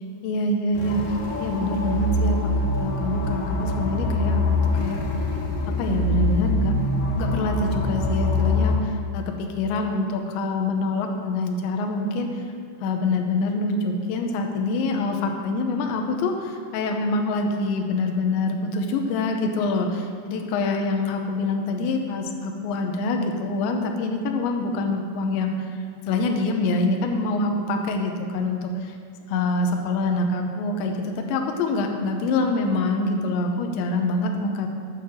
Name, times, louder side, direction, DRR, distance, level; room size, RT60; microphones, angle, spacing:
voice 1, 0.2-4.4 4.7-5.0 5.7-6.7 7.1-12.5 12.8-29.0 29.3-34.7, left 2 dB, 85° left, 3 dB, 3.2 m, -25 dB
sound 1, 0.7-8.7, left 2 dB, 60° left, 2.8 m, -24 dB
9.3 x 8.9 x 7.2 m, 2.3 s
omnidirectional pair, 5.0 m